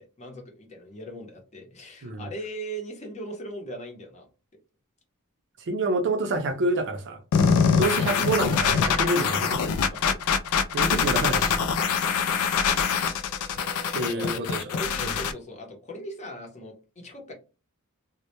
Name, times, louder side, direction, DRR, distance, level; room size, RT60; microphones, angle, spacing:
voice 1, 0.0-4.3 7.5-7.8 9.9-10.2 14.0-14.4 14.7-17.3, right 1 dB, 30° left, 0.7 m, -39 dB
voice 2, 5.7-7.2 7.8-9.6 10.7-11.6 13.9-14.6, right 2 dB, 55° right, 0.5 m, -27 dB
sound 1, 7.3-15.3, left 6 dB, 70° left, 0.3 m, -24 dB
2.1 x 2.1 x 2.8 m
head